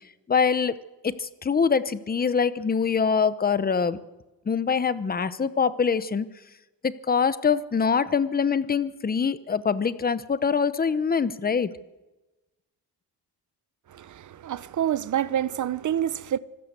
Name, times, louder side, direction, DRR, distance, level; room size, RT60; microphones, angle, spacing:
voice 1, 0.3-0.7 1.0-4.0 4.5-6.3 6.8-11.7, left 6 dB, 25° left, 0.8 m, -24 dB
voice 2, 13.9-16.4, right 10 dB, 50° right, 0.7 m, -27 dB
25.0 x 13.5 x 8.1 m
wide cardioid pair, 155°, 40 cm